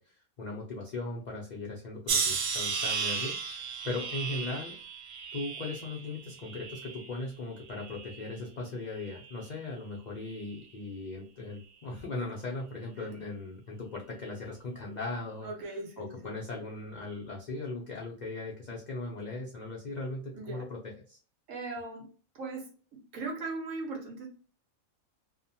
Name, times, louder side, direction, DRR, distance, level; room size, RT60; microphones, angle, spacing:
voice 1, 0.0-4.7 5.3-15.5 16.0-21.2, left 2 dB, 80° left, -2 dB, 0.4 m, -38 dB
sound 1, 2.1-7.2 7.7-8.4 9.1-9.4, right 5 dB, 90° right, 1.1 m, -34 dB
voice 2, 15.4-16.3 20.3-20.7 21.5-22.1 22.3-24.3, right 3 dB, 65° right, 1 dB, 1.2 m, -39 dB
2.9 x 2.1 x 2.6 m, 0.41 s
omnidirectional pair, 1.5 m